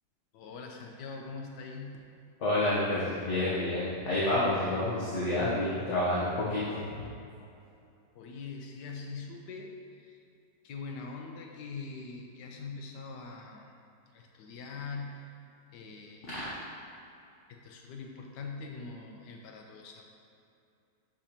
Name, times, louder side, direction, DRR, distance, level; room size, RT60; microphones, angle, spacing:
voice 1, 0.3-1.9 8.1-10.2 10.6-13.8 14.1-15.3 15.7-16.3 17.5-20.0, left 4 dB, 80° left, 2 dB, 1.2 m, -43 dB
voice 2, 2.4-7.1, left 1 dB, 50° left, -9 dB, 1.1 m, -29 dB
6.5 x 5.2 x 2.8 m, 2.6 s
omnidirectional pair, 1.9 m